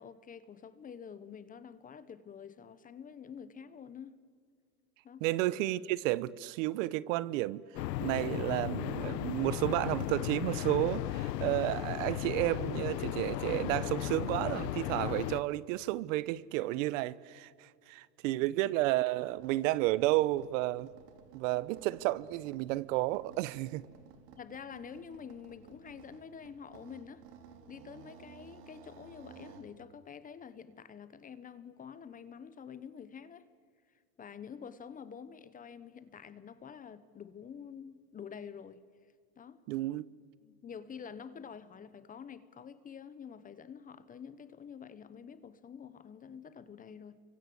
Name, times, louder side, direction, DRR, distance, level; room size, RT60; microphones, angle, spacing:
voice 1, 0.0-4.1 5.0-5.3 18.3-18.4 24.4-27.2 27.7-33.5 34.2-38.8 39.4-39.6 40.4-47.2, left 7 dB, 15° left, 1.0 m, -48 dB
voice 2, 5.2-7.6 8.0-20.9 21.3-23.8 39.7-40.0, right 17 dB, 50° right, 0.9 m, -32 dB
sound 1, 7.8-15.4, left 14 dB, 85° left, 1.0 m, -35 dB
sound 2, 19.3-29.7, right 7 dB, 75° right, 3.8 m, -56 dB
30.0 x 24.5 x 7.9 m
supercardioid pair, 140°, 48 cm